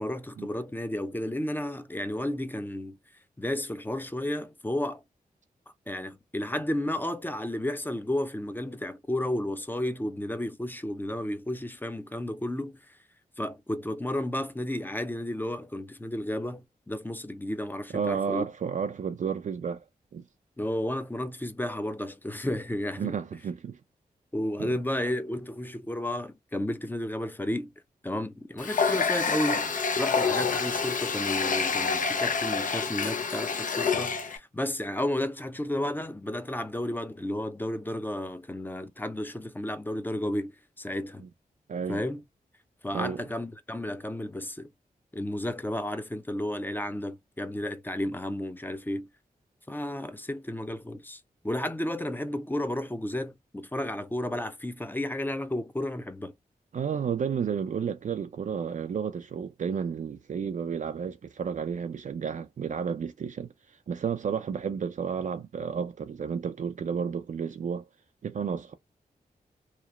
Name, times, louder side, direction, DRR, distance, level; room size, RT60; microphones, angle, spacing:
voice 1, 0.0-3.0 3.4-5.0 5.9-12.9 13.4-18.4 20.6-23.2 24.3-27.7 28.0-29.7 30.0-41.2 41.9-42.2 42.8-44.7 45.1-49.1 49.7-51.2 51.4-56.3, left 1 dB, 10° left, 0.5 m, -32 dB
voice 2, 17.9-19.8 20.1-20.2 23.0-23.8 24.6-24.7 41.7-42.0 42.9-43.2 56.7-67.8 68.2-68.7, right 7 dB, 55° right, 0.4 m, -32 dB
Water tap faucet, 28.6-34.4, left 5 dB, 60° left, 0.5 m, -27 dB
2.9 x 2.0 x 2.3 m
cardioid pair, 50°, 16 cm